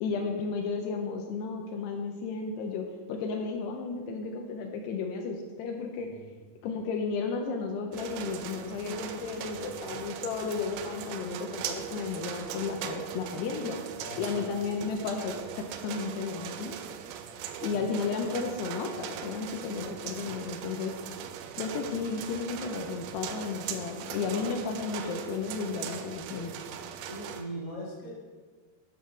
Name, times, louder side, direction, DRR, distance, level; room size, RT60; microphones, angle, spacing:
voice 1, 0.0-6.1 6.6-13.8 14.2-16.8 17.6-20.9 21.6-26.5, left 5 dB, 80° left, 3 dB, 2.6 m, -33 dB
sound 1, 7.9-27.4, right 9 dB, 85° right, 2.9 m, -40 dB
voice 2, 9.4-10.0 14.0-14.5 20.2-20.4 24.2-24.5 27.0-28.1, equal, 15° left, -6 dB, 0.7 m, -41 dB
11.0 x 4.2 x 6.0 m, 1.4 s
omnidirectional pair, 5.2 m